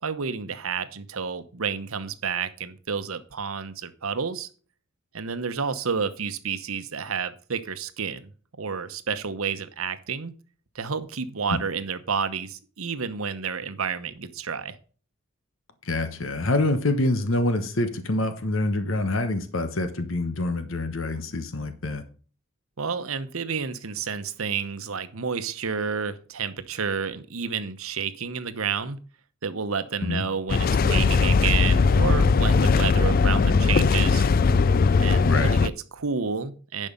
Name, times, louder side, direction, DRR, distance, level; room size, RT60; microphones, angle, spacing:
voice 1, 0.0-4.5 5.1-8.3 8.6-10.3 10.7-14.8 22.8-29.0 29.4-34.3 35.0-36.9, right 6 dB, 85° right, 12 dB, 1.0 m, -30 dB
voice 2, 15.8-22.0 30.1-30.2 35.2-35.5, left 2 dB, 70° left, 9 dB, 1.2 m, -26 dB
sound 1, 30.5-35.7, left 4 dB, 45° left, 0.3 m, -19 dB
11.0 x 5.5 x 5.4 m, 0.40 s
head